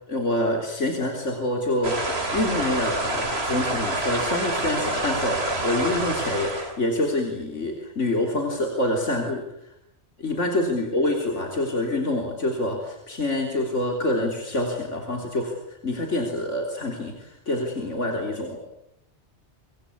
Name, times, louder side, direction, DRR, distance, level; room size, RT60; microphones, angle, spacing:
voice 1, 0.1-9.8 10.2-18.6, left 1 dB, 90° left, 2 dB, 3.9 m, -26 dB
sound 1, 1.8-6.8, right 2 dB, 60° right, 3.7 m, -27 dB
25.5 x 24.5 x 8.6 m, 0.81 s
omnidirectional pair, 1.2 m